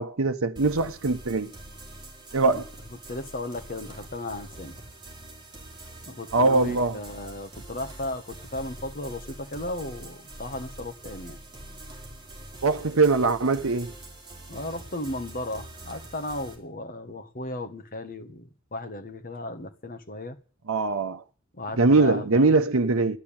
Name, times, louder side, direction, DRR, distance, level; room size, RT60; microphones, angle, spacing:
voice 1, 0.0-1.5 2.3-2.7 6.3-7.0 12.6-13.9 20.7-21.2 21.8-23.2, right 3 dB, 75° right, 0.9 m, -22 dB
sound 1, 0.6-16.6, right 1 dB, 20° right, 3.7 m, -44 dB
voice 2, 3.1-4.7 6.0-11.4 14.5-20.4 21.6-22.5, left 1 dB, 40° left, 1.4 m, -35 dB
12.0 x 11.0 x 8.9 m
head